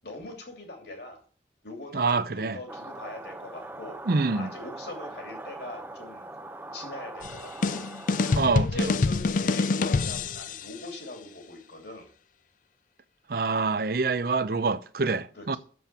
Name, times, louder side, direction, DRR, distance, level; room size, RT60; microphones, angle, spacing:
voice 1, 0.0-1.2 1.6-4.0 4.3-6.3 6.7-7.9 8.5-12.1 15.3-15.6, left 2 dB, 65° left, 2.9 m, -41 dB
voice 2, 1.9-2.6 4.1-4.5 8.3-8.9 13.3-15.6, right 4 dB, 55° right, 0.6 m, -26 dB
sound 1, 2.7-8.4, right 2 dB, 10° right, 0.6 m, -41 dB
sound 2, 7.2-10.7, left 4 dB, 45° left, 0.4 m, -26 dB
7.7 x 7.2 x 6.8 m
head